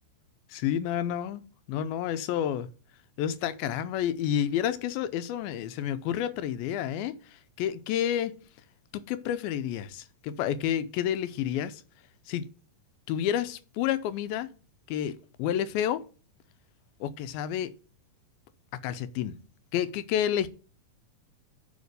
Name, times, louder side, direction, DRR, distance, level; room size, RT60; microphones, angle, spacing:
voice 1, 0.5-2.7 3.2-8.4 8.9-11.8 12.3-12.5 13.1-14.5 14.9-16.1 17.0-17.7 18.8-19.4 19.7-20.5, left 10 dB, 85° left, 2.4 m, -30 dB
8.2 x 4.3 x 6.6 m
omnidirectional pair, 4.2 m